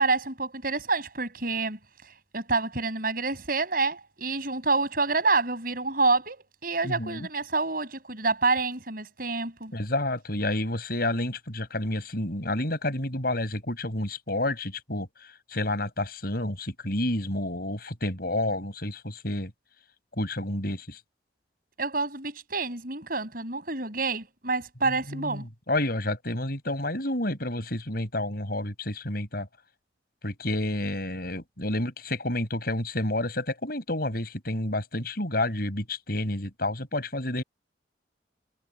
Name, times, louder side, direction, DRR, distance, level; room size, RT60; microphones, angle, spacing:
voice 1, 0.0-1.8 2.3-9.7 21.8-25.5, right 3 dB, 50° right, 7.5 m, -27 dB
voice 2, 6.8-7.3 9.7-15.1 15.5-19.5 20.2-21.0 24.8-29.5 30.2-37.4, left 1 dB, 55° left, 7.1 m, -30 dB
head